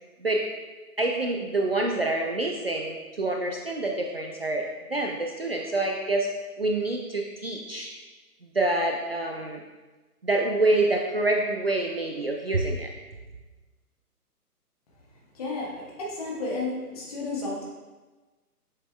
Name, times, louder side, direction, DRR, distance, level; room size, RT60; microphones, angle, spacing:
voice 1, 1.0-6.3 6.6-7.9 8.4-9.6 10.2-12.9, right 2 dB, 40° right, 1 dB, 0.5 m, -27 dB
voice 2, 15.3-17.6, left 2 dB, 25° left, -3 dB, 1.2 m, -32 dB
7.3 x 6.6 x 2.3 m, 1.2 s
figure-of-eight pair, 135°, 47 cm